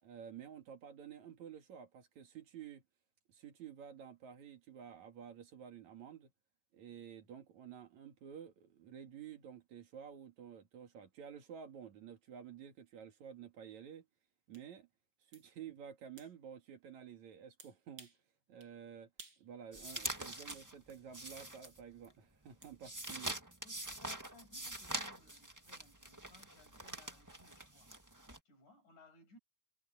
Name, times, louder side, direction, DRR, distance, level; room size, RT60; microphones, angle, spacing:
voice 1, 0.0-2.8 3.3-6.3 6.7-14.1 14.5-14.9 15.3-18.1 18.5-19.1 19.4-23.4, right 8 dB, 70° right, 3.4 m, -51 dB
sound 1, 14.5-14.7 15.3-15.5 16.2-16.3 17.6-18.2 18.6-18.7 19.2-19.5 19.8-20.7 21.6-21.8 22.6-22.8, right 3 dB, 35° right, 8.0 m, -56 dB
sound 2, 19.7-22.1 22.4-28.4, right 1 dB, 15° right, 0.7 m, -44 dB
voice 2, 23.6-27.9 28.5-29.4, left 2 dB, 80° left, 7.8 m, -63 dB
omnidirectional pair, 3.4 m